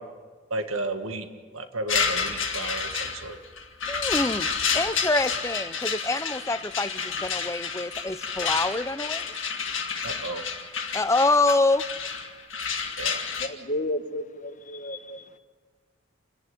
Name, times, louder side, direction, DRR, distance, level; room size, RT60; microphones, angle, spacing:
voice 1, 0.5-1.3 1.5-3.4 10.0-10.5 13.0-13.2, right 2 dB, 85° right, 7 dB, 1.6 m, -32 dB
sound 1, 1.9-13.5, left 6 dB, 70° left, 2.0 m, -30 dB
voice 2, 3.9-4.5 4.7-9.2 10.9-11.8, left 2 dB, 15° left, 13 dB, 0.5 m, -25 dB
voice 3, 13.4-15.3, left 1 dB, 35° left, 8 dB, 1.3 m, -32 dB
28.0 x 10.5 x 9.6 m, 1.5 s
head